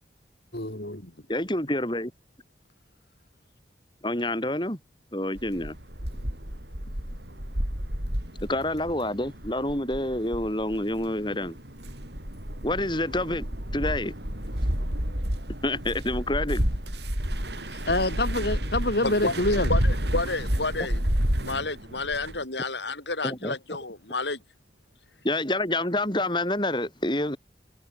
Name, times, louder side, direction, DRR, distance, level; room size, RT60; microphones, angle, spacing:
voice 1, 0.5-1.1 17.9-19.7, left 1 dB, 70° left, 5.2 m, -26 dB
voice 2, 1.3-2.1 4.0-4.8 5.1-5.7 8.5-11.6 12.6-13.5 13.7-14.1 15.6-16.6 23.2-23.5 25.2-27.4, left 1 dB, 25° left, 7.9 m, -27 dB
sound 1, 5.4-22.4, equal, 80° right, 7.8 m, -30 dB
voice 3, 17.5-17.8 19.0-21.0 21.4-24.4, left 3 dB, 85° left, 7.7 m, -31 dB
head